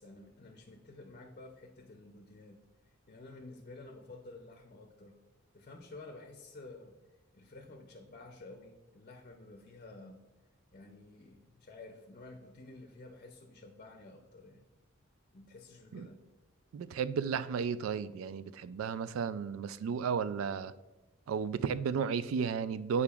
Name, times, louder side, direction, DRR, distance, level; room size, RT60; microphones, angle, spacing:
voice 1, 0.0-2.6 3.1-5.2 5.5-7.0 7.3-10.2 10.7-14.6 15.3-16.2, left 2 dB, 40° left, 0.6 m, -51 dB
voice 2, 16.7-20.7 21.3-23.0, right 6 dB, 75° right, 0.3 m, -33 dB
8.5 x 4.8 x 2.4 m
head